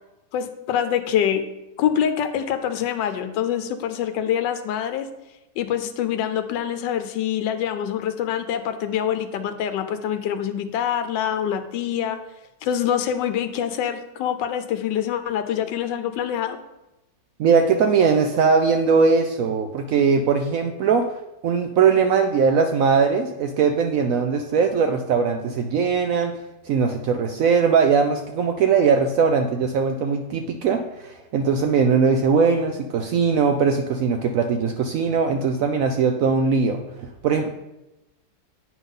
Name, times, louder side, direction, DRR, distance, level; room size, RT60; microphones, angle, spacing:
voice 1, 0.3-1.4 1.8-5.1 5.6-12.2 12.6-16.6, left 9 dB, 80° left, 8 dB, 1.3 m, -25 dB
voice 2, 17.4-21.1 21.4-26.3 26.6-37.5, right 5 dB, 75° right, 5 dB, 0.8 m, -20 dB
8.5 x 5.3 x 3.7 m, 0.98 s
omnidirectional pair, 1.9 m